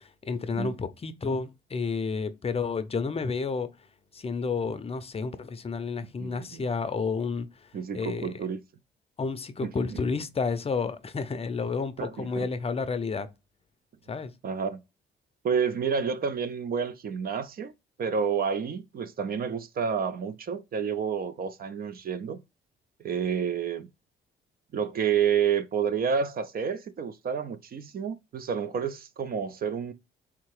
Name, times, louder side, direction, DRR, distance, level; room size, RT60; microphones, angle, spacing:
voice 1, 0.0-3.7 4.1-7.5 7.9-8.3 9.2-13.3 14.1-14.3, left 4 dB, 30° left, 0.5 m, -30 dB
voice 2, 6.2-6.7 7.7-8.6 9.6-10.0 12.0-12.5 14.4-14.8 15.4-17.7 18.0-22.4 23.0-23.9 24.7-29.9, right 7 dB, 50° right, 0.5 m, -29 dB
3.5 x 2.8 x 4.7 m
cardioid pair, 90°, 20 cm